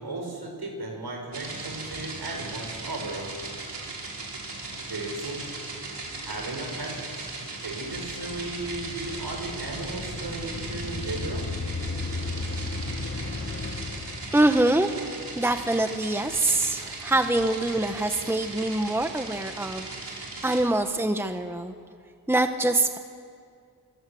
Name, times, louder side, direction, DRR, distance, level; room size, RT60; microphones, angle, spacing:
voice 1, 0.0-3.4 4.9-5.4 6.2-11.5, right 2 dB, 70° right, 1 dB, 7.5 m, -35 dB
sound 1, 1.3-20.6, right 3 dB, 85° right, 5.7 m, -38 dB
sound 2, 8.1-14.9, left 3 dB, 35° left, 1.3 m, -35 dB
voice 2, 14.3-14.9 15.4-21.7 22.3-23.0, right 2 dB, 5° right, 7 dB, 1.2 m, -24 dB
29.5 x 25.5 x 7.9 m, 2.3 s
wide cardioid pair, 110°, 40 cm